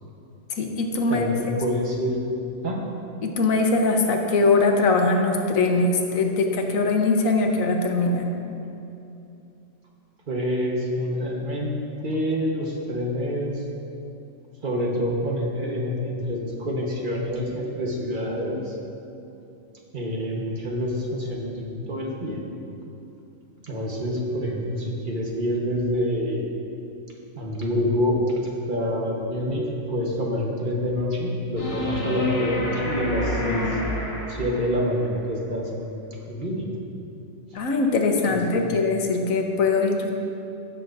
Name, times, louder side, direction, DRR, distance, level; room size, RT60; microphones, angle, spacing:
voice 1, 0.5-1.3 3.2-8.3 37.5-40.1, left 3 dB, 75° left, 3 dB, 1.2 m, -22 dB
voice 2, 1.1-2.2 2.6-2.8 10.3-11.8 12.0-13.6 14.6-18.7 19.9-22.4 23.6-26.4 27.4-33.8 34.3-36.7 38.3-38.7, equal, 40° right, -1 dB, 1.2 m, -27 dB
sound 1, 31.6-34.9 37.6-37.7, left 1 dB, 25° left, 1.0 m, -28 dB
16.0 x 6.5 x 2.6 m, 2.8 s
omnidirectional pair, 1.5 m